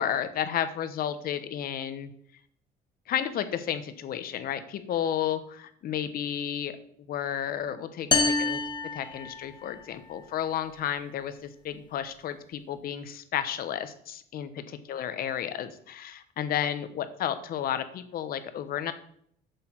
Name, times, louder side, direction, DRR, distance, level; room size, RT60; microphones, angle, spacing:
voice 1, 0.0-2.1 3.1-6.8 7.1-8.6 8.9-18.9, left 9 dB, 60° left, 11 dB, 0.9 m, -32 dB
sound 1, 8.1-9.8, left 3 dB, 25° left, 0.9 m, -27 dB
7.8 x 6.7 x 4.5 m, 0.65 s
cardioid pair, 110°, 17 cm